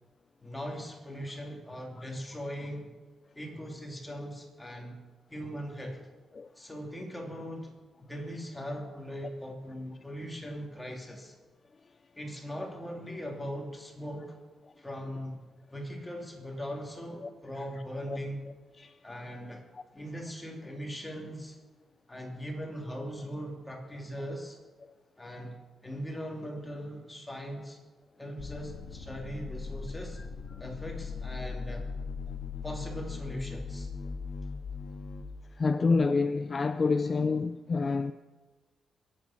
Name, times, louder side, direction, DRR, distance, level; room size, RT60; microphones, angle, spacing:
voice 1, 0.4-2.9 3.3-5.0 5.3-6.1 6.5-7.7 8.0-11.3 12.1-14.4 14.8-15.4 15.7-18.4 19.0-19.6 19.9-21.6 22.1-24.6 25.2-25.6 25.8-27.8 28.2-30.2 30.6-31.8 32.6-33.9, equal, 10° left, 2.8 m, -40 dB
sound 1, 28.4-35.2, left 5 dB, 45° left, 1.8 m, -39 dB
voice 2, 35.6-38.1, left 4 dB, 30° left, 0.4 m, -27 dB
22.0 x 8.7 x 5.8 m
wide cardioid pair, 145°, 0 cm